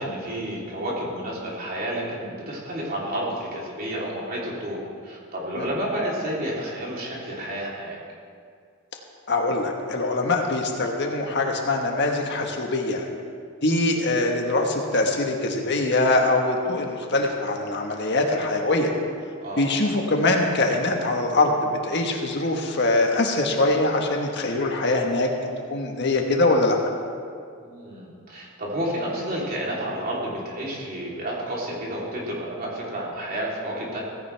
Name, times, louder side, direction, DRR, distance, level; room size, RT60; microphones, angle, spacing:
voice 1, 0.0-8.0 19.4-19.7 27.6-34.0, right 1 dB, 45° right, -5 dB, 3.5 m, -30 dB
voice 2, 9.3-13.1 13.6-18.9 19.6-25.3 25.7-26.8, left 2 dB, 55° left, 2 dB, 1.5 m, -23 dB
17.0 x 16.0 x 3.5 m, 2.2 s
head